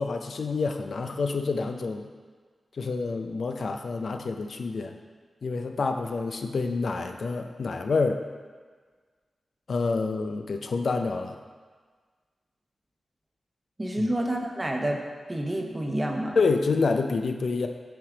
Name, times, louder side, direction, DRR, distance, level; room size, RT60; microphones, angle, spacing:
voice 1, 0.0-2.1 2.8-4.9 5.4-8.2 9.7-11.4 14.0-14.1 16.4-17.7, left 4 dB, 75° left, 5 dB, 0.4 m, -28 dB
voice 2, 13.8-15.0 15.3-16.4, right 1 dB, 30° right, 2 dB, 0.8 m, -28 dB
6.0 x 3.2 x 4.9 m, 1.5 s
cardioid pair, 40°, 0 cm